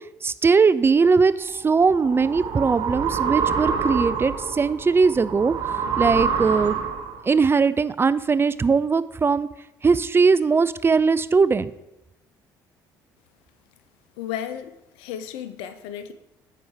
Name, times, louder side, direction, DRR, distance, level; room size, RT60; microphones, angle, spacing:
voice 1, 0.2-6.8 7.3-9.5 9.8-11.7, right 5 dB, 25° right, 15 dB, 0.3 m, -20 dB
sound 1, 1.5-7.3, right 6 dB, 55° right, 0.9 m, -26 dB
voice 2, 14.2-16.1, left 10 dB, 75° left, 11 dB, 0.5 m, -34 dB
6.7 x 4.6 x 4.7 m, 0.90 s
hypercardioid pair, 60°, 10 cm